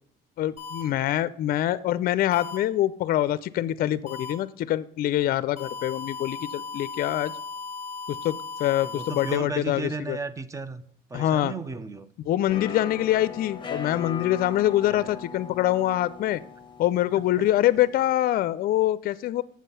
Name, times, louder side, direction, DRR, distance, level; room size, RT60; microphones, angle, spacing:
voice 1, 0.4-7.3 8.1-10.2 11.1-11.5 12.2-16.4 16.8-19.4, left 13 dB, 60° left, 17 dB, 0.5 m, -25 dB
sound 1, 0.6-0.8 2.3-2.6 4.1-4.3 5.6-9.4, left 4 dB, 35° right, 3.1 m, -37 dB
voice 2, 8.8-10.8 11.1-12.1 14.9-15.2, right 4 dB, 20° right, 14 dB, 0.7 m, -34 dB
sound 2, 12.5-18.1, left 6 dB, 30° left, 1.2 m, -39 dB
7.4 x 7.4 x 5.5 m, 0.64 s
cardioid pair, 110°, 17 cm